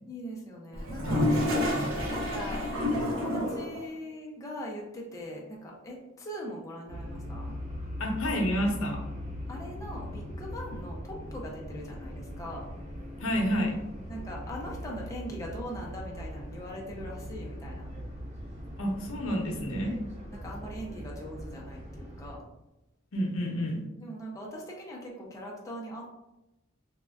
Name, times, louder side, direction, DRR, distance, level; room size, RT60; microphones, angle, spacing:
voice 1, 0.1-1.3 2.1-7.5 9.5-12.7 14.1-17.9 19.9-22.4 24.0-26.1, equal, 15° left, -2 dB, 0.4 m, -41 dB
Toilet flush, 0.7-3.8, left 1 dB, 80° right, 0.7 m, -28 dB
sound 1, 6.9-22.3, equal, 35° right, 0.5 m, -40 dB
voice 2, 8.0-9.0 13.2-13.8 18.8-20.0 23.1-23.8, equal, 85° left, 1 dB, 0.6 m, -29 dB
3.4 x 2.1 x 2.3 m, 0.95 s
head